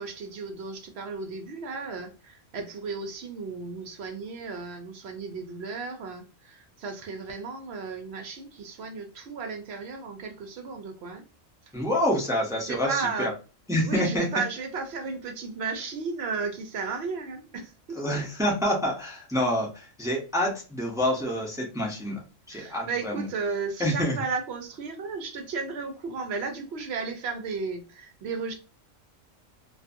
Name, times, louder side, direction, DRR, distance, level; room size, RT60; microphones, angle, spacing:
voice 1, 0.0-11.2 12.7-13.3 13.8-18.0 22.5-28.5, right 4 dB, 65° right, 5 dB, 0.7 m, -34 dB
voice 2, 11.7-13.3 13.7-14.3 18.0-22.2 22.5-23.2 23.8-24.2, equal, 5° right, -2 dB, 0.4 m, -27 dB
2.5 x 2.5 x 2.5 m, 0.33 s
omnidirectional pair, 1.4 m